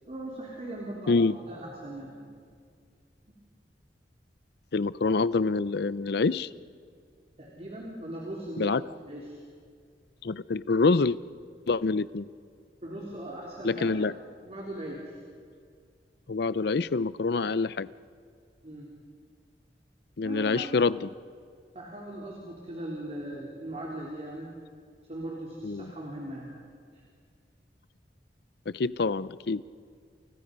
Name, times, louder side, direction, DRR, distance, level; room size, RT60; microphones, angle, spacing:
voice 1, 0.1-2.3 7.4-9.4 12.8-14.1 14.4-15.2 18.6-18.9 20.2-20.7 21.8-24.5 25.1-26.5 26.9-27.0, right 1 dB, 40° right, -3 dB, 3.7 m, -39 dB
voice 2, 4.7-6.5 8.6-8.8 10.2-11.2 11.7-12.3 13.6-14.1 16.3-17.9 20.2-21.1 25.6-25.9 28.7-29.6, left 3 dB, 65° left, 16 dB, 0.6 m, -26 dB
30.0 x 29.0 x 5.4 m, 2.1 s
head